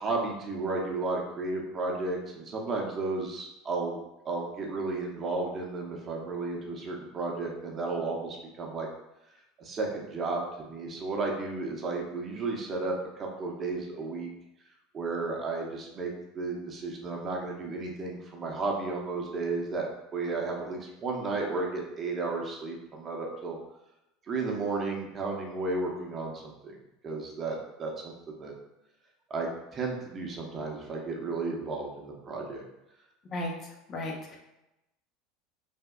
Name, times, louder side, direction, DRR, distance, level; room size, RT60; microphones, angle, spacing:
voice 1, 0.0-8.9 9.6-14.3 14.9-19.9 20.1-23.6 24.3-26.8 27.0-27.9 28.3-28.5 29.3-32.6, right 3 dB, 35° right, 0 dB, 0.7 m, -33 dB
voice 2, 33.9-34.3, left 1 dB, 40° left, -1 dB, 0.8 m, -34 dB
3.4 x 2.7 x 2.3 m, 0.92 s
hypercardioid pair, 75°, 0 cm